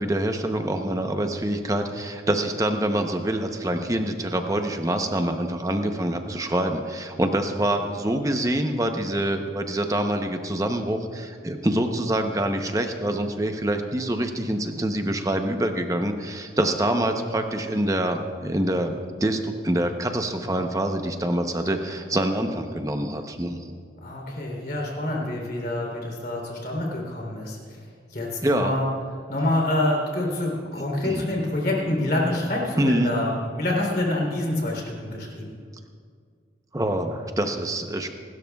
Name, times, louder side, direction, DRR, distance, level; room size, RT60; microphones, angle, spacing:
voice 1, 0.0-23.6 28.4-28.7 31.0-31.2 32.8-33.1 36.7-38.1, right 1 dB, 20° right, 5 dB, 0.8 m, -25 dB
voice 2, 24.0-27.8 28.1-28.9 29.3-35.6, left 1 dB, 50° left, -2 dB, 3.4 m, -27 dB
27.0 x 12.5 x 2.4 m, 2.1 s
head